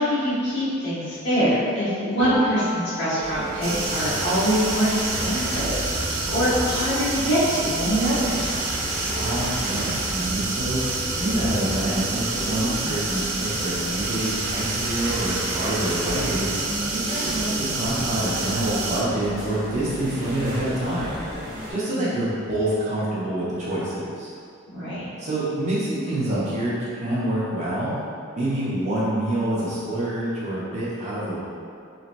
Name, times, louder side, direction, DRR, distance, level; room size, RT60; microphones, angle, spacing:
voice 1, 0.0-8.5 21.8-22.2 24.7-25.1, equal, 60° left, -12 dB, 1.3 m, -24 dB
Piano, 2.2-9.8 10.2-11.7, right 1 dB, 5° left, 1.2 m, -37 dB
sound 1, 3.2-21.7, equal, 20° right, 1.2 m, -33 dB
sound 2, 3.6-19.0, right 3 dB, 85° right, 0.4 m, -29 dB
voice 2, 9.1-10.8 11.2-16.7 16.9-21.2 21.7-24.3 25.2-27.9 28.4-31.4, right 1 dB, 35° right, -8 dB, 0.7 m, -27 dB
3.0 x 2.7 x 2.5 m, 2.3 s
head